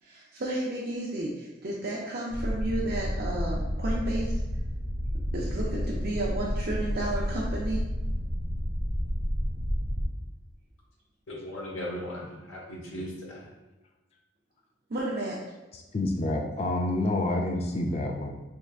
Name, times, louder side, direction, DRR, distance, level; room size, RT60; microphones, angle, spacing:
voice 1, 0.0-4.3 5.3-7.8 14.9-15.4, right 1 dB, 50° right, -4 dB, 0.5 m, -32 dB
sound 1, 2.3-10.1, equal, 50° left, 1.1 m, -30 dB
voice 2, 11.3-13.5, equal, 80° left, -3 dB, 1.1 m, -37 dB
voice 3, 15.7-18.3, left 1 dB, 30° left, 1 dB, 0.3 m, -28 dB
4.5 x 3.3 x 2.4 m, 1.1 s
head